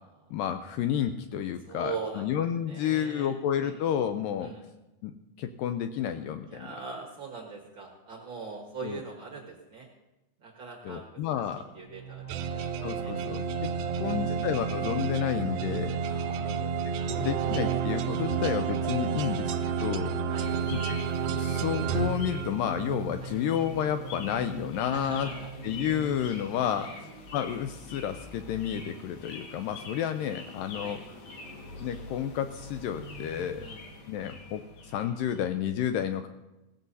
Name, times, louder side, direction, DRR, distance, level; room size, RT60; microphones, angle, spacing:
voice 1, 0.3-4.5 5.0-6.7 8.8-9.0 10.8-11.6 12.8-13.7 14.0-16.0 16.5-20.2 20.7-21.0 21.3-25.3 25.6-26.9 27.3-31.0 31.8-33.7 34.1-36.3, left 9 dB, 85° left, 8 dB, 1.9 m, -31 dB
voice 2, 1.6-2.3 2.7-3.3 3.6-3.8 4.4-4.6 6.5-9.9 10.4-11.4 11.7-13.2 14.0-14.4 16.0-17.8 20.3-20.5 23.2-23.4 24.9-25.5 26.7-27.0 30.8-31.0 33.6-33.9, right 5 dB, 65° right, -1 dB, 1.2 m, -42 dB
sound 1, 11.8-26.1, right 4 dB, 35° left, 2.8 m, -40 dB
sound 2, 12.3-23.0, right 7 dB, 80° right, 2.2 m, -31 dB
sound 3, 20.4-35.6, left 2 dB, 65° left, 3.4 m, -45 dB
18.0 x 15.5 x 2.7 m, 1.0 s
omnidirectional pair, 4.5 m